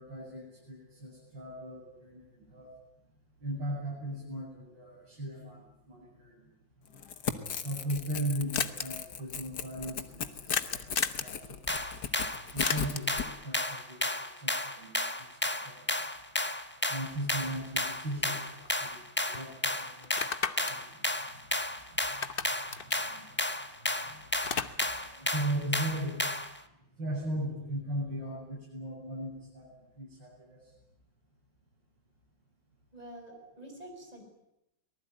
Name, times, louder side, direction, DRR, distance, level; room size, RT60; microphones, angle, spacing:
voice 1, 0.0-2.7 3.4-6.4 7.6-11.9 12.5-16.0 16.9-21.1 21.9-26.2 27.0-29.7 30.0-30.6, right 1 dB, 65° right, -7 dB, 8.9 m, -38 dB
Crackle / Tearing, 6.9-13.3, left 7 dB, 60° left, 1.8 m, -38 dB
sound 1, 7.9-8.0 8.1-8.2 8.5-8.9 10.5-11.3 12.6-13.2 17.4-17.5 17.9-19.0 19.3-19.5 20.0-21.8 22.1-23.9 24.2-25.1, left 6 dB, 40° left, 0.8 m, -35 dB
sound 2, 11.7-26.6, left 1 dB, 10° left, 0.7 m, -33 dB
voice 2, 32.9-34.2, right 1 dB, 20° right, 2 dB, 6.1 m, -47 dB
24.5 x 19.5 x 9.3 m, 0.84 s
omnidirectional pair, 2.1 m